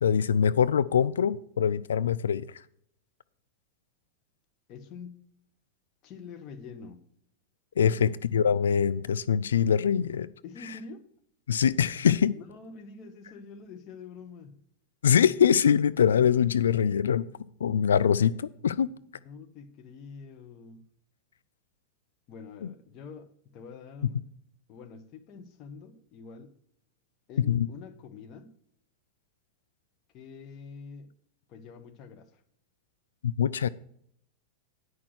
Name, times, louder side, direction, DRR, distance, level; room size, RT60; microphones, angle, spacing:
voice 1, 0.0-2.5 7.8-10.3 11.5-12.3 15.0-17.3 17.6-18.9 27.5-27.7 33.2-33.7, left 8 dB, 65° left, 0.3 m, -23 dB
voice 2, 4.7-5.2 6.0-7.0 7.9-8.2 10.4-11.1 12.3-14.6 18.9-20.8 22.3-24.2 24.7-26.5 27.3-28.5 30.1-31.1 31.5-32.4, left 5 dB, 35° left, 1.2 m, -46 dB
9.4 x 6.2 x 6.3 m
figure-of-eight pair, 90°, 0 cm